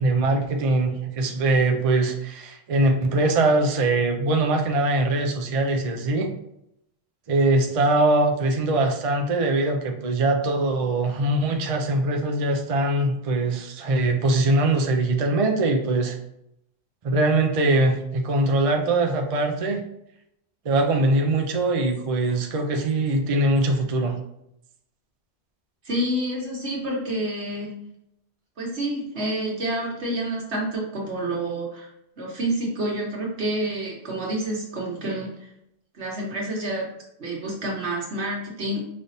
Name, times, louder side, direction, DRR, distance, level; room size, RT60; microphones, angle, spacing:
voice 1, 0.0-6.3 7.3-16.2 17.0-19.8 20.6-24.1, right 2 dB, 45° right, 3 dB, 0.5 m, -22 dB
voice 2, 25.8-27.7 28.6-31.9 32.2-35.5 35.9-36.9 37.2-38.8, right 1 dB, 75° right, -3 dB, 1.6 m, -28 dB
5.1 x 3.3 x 2.7 m, 0.80 s
omnidirectional pair, 1.1 m